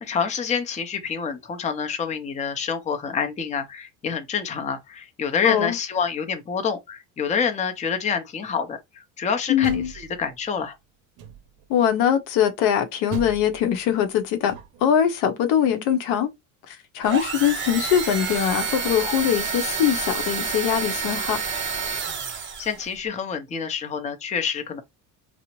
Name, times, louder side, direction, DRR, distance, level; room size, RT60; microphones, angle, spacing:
voice 1, 0.0-10.8 22.3-24.8, left 6 dB, 20° left, 0.5 m, -27 dB
voice 2, 5.4-5.8 9.5-9.9 11.7-14.6 14.8-16.3 16.7-21.4, left 9 dB, 70° left, 0.7 m, -22 dB
Door, 9.4-10.6 11.2-11.7 13.1-15.0, right 8 dB, 60° right, 0.6 m, -38 dB
sound 1, 17.0-22.8, right 5 dB, 30° right, 0.8 m, -29 dB
2.6 x 2.0 x 2.9 m
supercardioid pair, 95°, 40 cm